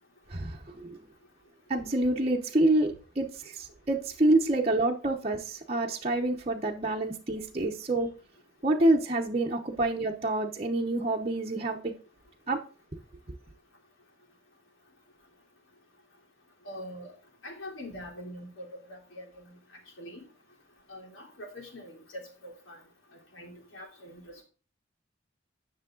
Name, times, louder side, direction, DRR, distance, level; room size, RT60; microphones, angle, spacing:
voice 1, 0.3-1.0 1.7-8.1 8.6-11.9 12.5-12.6 12.9-13.0, right 2 dB, 30° right, 0.9 m, -27 dB
voice 2, 16.7-17.1 17.4-19.6 20.0-20.2 20.9-22.8 23.3-24.2, equal, 85° left, 3.4 m, -43 dB
10.0 x 6.5 x 3.8 m
head